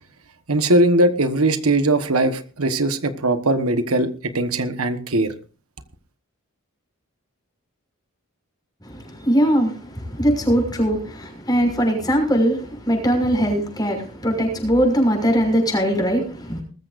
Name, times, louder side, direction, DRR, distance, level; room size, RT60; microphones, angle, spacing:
voice 1, 0.5-4.1 4.3-5.3, right 2 dB, 80° right, 9 dB, 1.4 m, -20 dB
voice 2, 8.8-16.6, equal, 20° left, 3 dB, 6.0 m, -21 dB
20.5 x 14.5 x 2.6 m, 0.37 s
head